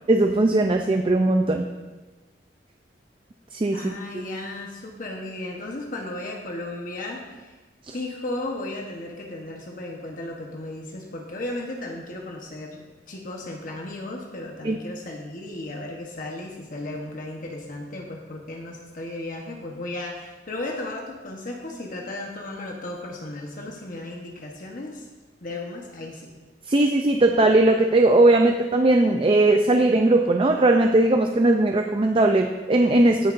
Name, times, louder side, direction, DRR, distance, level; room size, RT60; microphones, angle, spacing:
voice 1, 0.1-1.6 3.5-3.8 4.1-4.2 7.9-8.0 14.6-14.8 26.7-33.3, right 2 dB, 30° right, 4 dB, 0.5 m, -19 dB
voice 2, 3.7-7.5 7.9-25.1 25.4-26.3, left 2 dB, 50° left, 0 dB, 1.1 m, -35 dB
18.0 x 6.7 x 2.6 m, 1.2 s
head